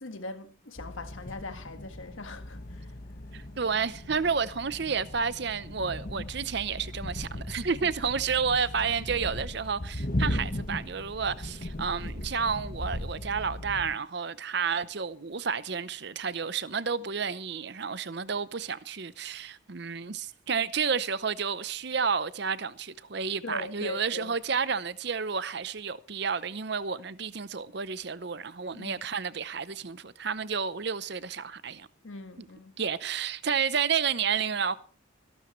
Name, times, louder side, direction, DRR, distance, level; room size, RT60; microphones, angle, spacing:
voice 1, 0.0-3.0 7.8-7.9 23.4-24.3 28.7-29.0 32.0-32.7, left 2 dB, 75° left, 1.5 m, -40 dB
sound 1, 0.8-14.0, left 1 dB, 45° left, 1.2 m, -37 dB
voice 2, 3.3-31.9 32.4-32.5 32.8-34.7, right 6 dB, 55° right, 0.7 m, -31 dB
21.0 x 12.0 x 3.1 m
head